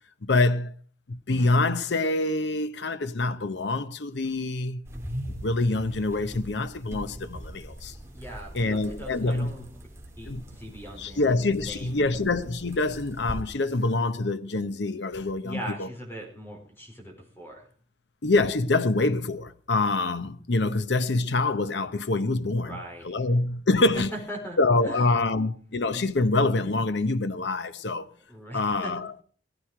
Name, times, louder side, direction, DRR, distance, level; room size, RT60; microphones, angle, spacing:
voice 1, 0.2-0.7 1.1-4.8 5.4-7.9 8.5-9.5 10.3-10.4 11.0-15.9 18.2-22.8 23.0-24.1 24.6-28.1 28.5-29.1, left 2 dB, 80° left, 0.9 m, -25 dB
sound 1, 4.8-13.4, equal, 15° right, 2.7 m, -41 dB
voice 2, 8.1-9.8 10.2-11.3 11.7-12.2 15.4-17.7 22.6-23.3 23.9-25.0 28.3-28.9, right 1 dB, 10° left, 4.3 m, -40 dB
16.0 x 14.5 x 4.9 m
head